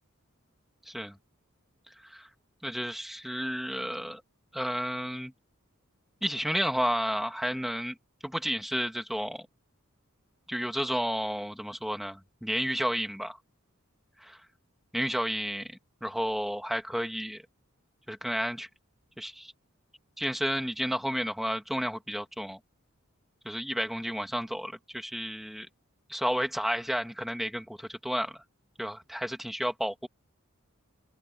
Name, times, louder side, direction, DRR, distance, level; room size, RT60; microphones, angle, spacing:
voice 1, 0.9-1.2 2.0-2.3 2.6-4.2 4.5-5.3 6.2-7.9 8.2-9.5 10.5-13.4 14.2-14.4 14.9-15.7 16.0-17.4 18.1-18.7 19.2-19.5 20.2-22.6 23.4-25.7 26.1-28.4 28.8-30.1, equal, ahead, 2.3 m, -32 dB
open air
head